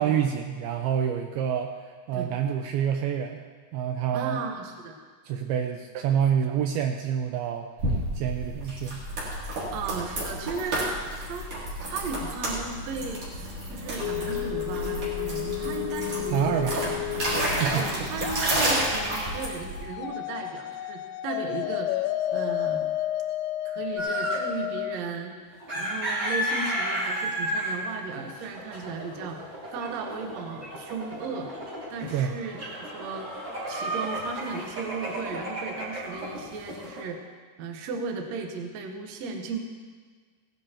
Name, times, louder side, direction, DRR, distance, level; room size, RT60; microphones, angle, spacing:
voice 1, 0.0-3.4 3.7-4.4 5.2-7.7 8.1-9.0 16.3-16.8 17.4-18.1 32.1-32.3, right 8 dB, 85° right, 5 dB, 2.2 m, -27 dB
voice 2, 4.1-5.0 5.9-6.0 6.5-6.6 9.7-10.9 11.2-11.5 11.8-16.8 17.7-22.9 23.6-25.3 25.7-29.4 29.7-31.5 31.9-33.3 33.7-37.2 37.6-39.6, right 4 dB, 70° right, 3 dB, 1.6 m, -36 dB
sound 1, 7.8-19.8, right 1 dB, 45° right, 4.3 m, -31 dB
Synth Lead, 14.0-25.0, left 14 dB, 85° left, 2.7 m, -32 dB
sound 2, 24.0-24.5 25.5-37.0, equal, 25° right, 3.6 m, -33 dB
17.5 x 10.5 x 4.4 m, 1.5 s
omnidirectional pair, 4.9 m